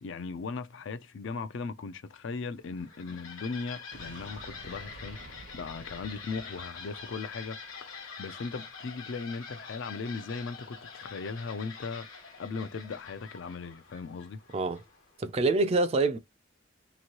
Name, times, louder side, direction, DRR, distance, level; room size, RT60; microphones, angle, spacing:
voice 1, 0.0-7.6 7.9-12.1 12.4-14.4, left 4 dB, 60° left, 0.4 m, -38 dB
sound 1, 2.6-15.1, left 5 dB, 80° left, 1.2 m, -46 dB
sound 2, 3.9-7.9, right 2 dB, 60° right, 0.6 m, -50 dB
voice 2, 15.2-16.2, right 3 dB, 30° right, 0.3 m, -26 dB
3.0 x 2.6 x 2.8 m
head